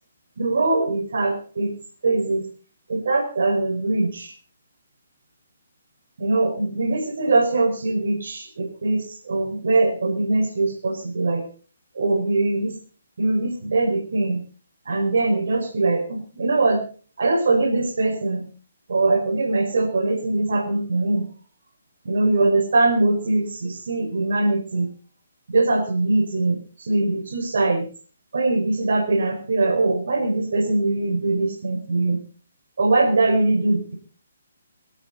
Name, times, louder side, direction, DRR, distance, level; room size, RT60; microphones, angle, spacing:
voice 1, 0.4-1.7 2.0-2.4 2.9-4.3 6.2-11.4 12.0-12.7 13.2-14.4 14.9-16.8 17.2-18.4 18.9-21.3 22.0-24.9 25.5-27.8 28.3-32.2 32.8-33.9, right 2 dB, 60° right, 4 dB, 4.7 m, -22 dB
26.0 x 9.1 x 4.1 m, 0.39 s
figure-of-eight pair, 135°, 0 cm